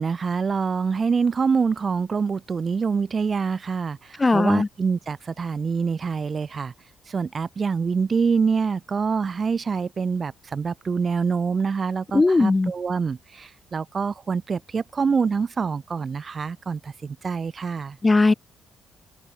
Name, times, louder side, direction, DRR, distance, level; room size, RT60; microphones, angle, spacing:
voice 1, 0.0-6.7 7.1-18.0, right 5 dB, 40° right, 5.2 m, -25 dB
voice 2, 4.2-4.7 12.1-12.7 18.0-18.3, left 3 dB, 20° left, 2.8 m, -18 dB
cardioid pair, 90°, 0 cm